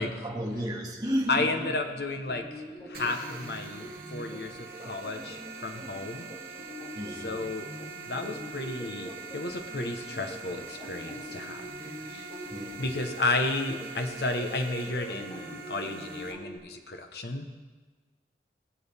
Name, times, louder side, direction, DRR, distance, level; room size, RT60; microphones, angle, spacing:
voice 1, 0.0-1.8 4.3-4.6 5.1-5.3 5.7-6.1 6.9-7.3 12.5-12.8, equal, 20° right, -2 dB, 1.9 m, -34 dB
voice 2, 1.3-6.3 7.2-7.7 8.1-11.6 12.1-12.3 12.8-17.5, left 2 dB, 65° left, 5 dB, 1.1 m, -32 dB
sound 1, 1.6-16.6, equal, 25° left, 2.6 m, -44 dB
sound 2, 2.9-16.3, right 5 dB, 55° right, 1.3 m, -44 dB
21.0 x 7.8 x 3.5 m, 1.4 s
head